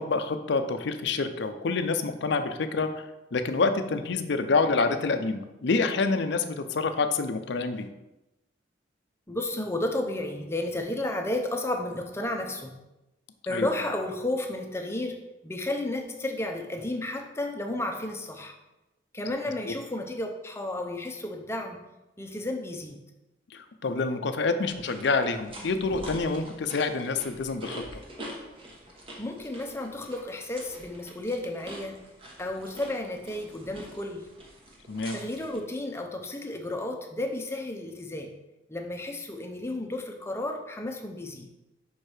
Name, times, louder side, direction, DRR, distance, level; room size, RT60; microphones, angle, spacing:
voice 1, 0.0-7.9 13.5-13.7 19.7-19.8 23.5-27.8 34.9-35.2, left 4 dB, 65° left, 8 dB, 0.5 m, -27 dB
voice 2, 9.3-12.7 13.5-15.2 15.4-18.5 19.1-21.8 22.2-23.0 29.2-32.0 32.4-34.3 35.1-38.3 38.7-41.5, left 1 dB, 15° left, 3 dB, 0.6 m, -32 dB
sound 1, 24.7-35.6, equal, 30° right, 1.1 m, -45 dB
5.3 x 4.5 x 4.9 m, 0.99 s
head